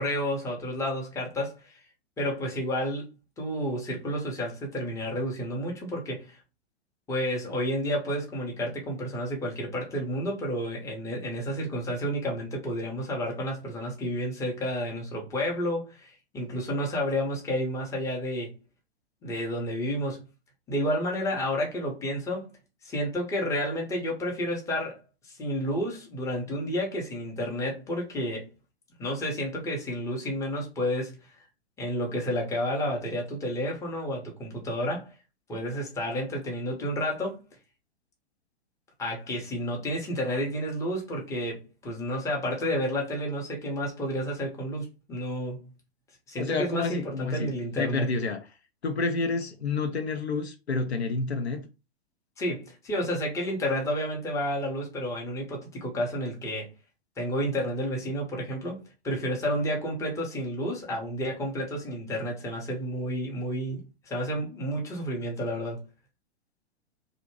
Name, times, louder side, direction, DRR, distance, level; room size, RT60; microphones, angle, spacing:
voice 1, 0.0-1.8 2.2-3.1 3.4-6.4 7.1-18.5 19.2-20.2 20.7-22.5 22.8-28.5 29.0-31.2 31.8-35.1 35.5-37.4 39.0-45.7 46.3-48.1 52.4-56.7 57.2-65.8, equal, 10° left, 0.7 m, -31 dB
voice 2, 46.4-47.5 47.8-48.4 48.8-51.6, left 3 dB, 80° left, 0.6 m, -29 dB
2.6 x 2.1 x 2.9 m
figure-of-eight pair, 110°, 32 cm